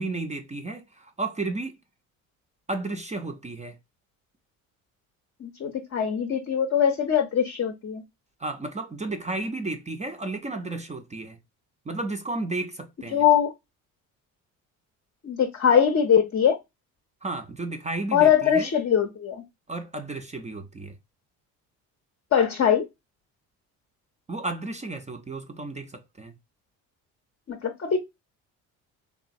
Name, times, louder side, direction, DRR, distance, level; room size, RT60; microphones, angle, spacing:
voice 1, 0.0-1.8 2.7-3.8 8.4-11.4 11.9-13.2 17.2-18.7 19.7-21.0 24.3-26.3, right 2 dB, 20° right, 0.4 m, -33 dB
voice 2, 5.4-8.0 13.1-13.5 15.2-16.6 18.1-19.4 22.3-22.9 27.5-28.0, left 8 dB, 35° left, 0.6 m, -22 dB
3.0 x 2.2 x 2.5 m
hypercardioid pair, 65°, 39 cm